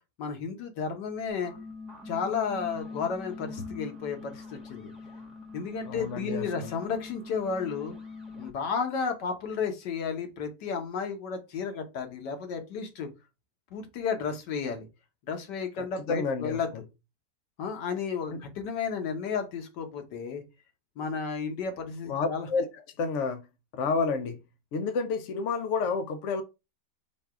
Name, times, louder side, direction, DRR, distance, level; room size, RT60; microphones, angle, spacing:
voice 1, 0.2-1.5 2.1-4.9 5.5-7.9 8.4-13.1 13.7-14.9 15.3-16.7 17.6-20.4 21.0-22.5, left 6 dB, 90° left, 1.6 m, -32 dB
sound 1, 1.3-8.5, left 4 dB, ahead, 0.9 m, -43 dB
voice 2, 5.8-6.7 15.8-16.6 18.3-18.4 22.1-23.5 23.7-24.4 24.7-26.4, left 4 dB, 70° left, 0.7 m, -30 dB
4.7 x 2.3 x 4.7 m
omnidirectional pair, 1.8 m